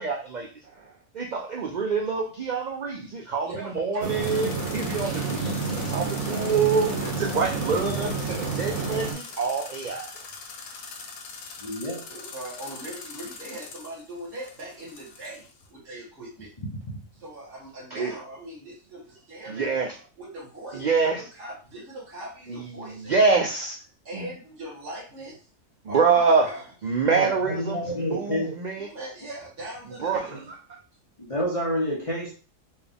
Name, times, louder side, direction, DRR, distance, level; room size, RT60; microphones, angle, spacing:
voice 1, 0.0-10.1 17.9-18.1 19.5-19.9 20.7-21.2 22.5-23.8 24.1-24.3 25.8-26.5 26.8-28.9 30.0-30.4, right 5 dB, 65° right, 1 dB, 0.4 m, -26 dB
voice 2, 3.5-4.1 4.5-4.7 12.1-16.5 17.2-23.1 24.1-25.4 25.9-26.6 28.8-30.5, right 1 dB, 45° right, -6 dB, 1.9 m, -40 dB
sound 1, 4.0-9.1, right 4 dB, 85° right, 1.4 m, -29 dB
sound 2, 4.2-15.7, left 4 dB, 80° left, 1.1 m, -42 dB
voice 3, 11.6-12.1 27.0-28.6 31.2-32.3, equal, 30° left, -4 dB, 0.8 m, -29 dB
4.4 x 2.3 x 3.4 m, 0.35 s
omnidirectional pair, 1.4 m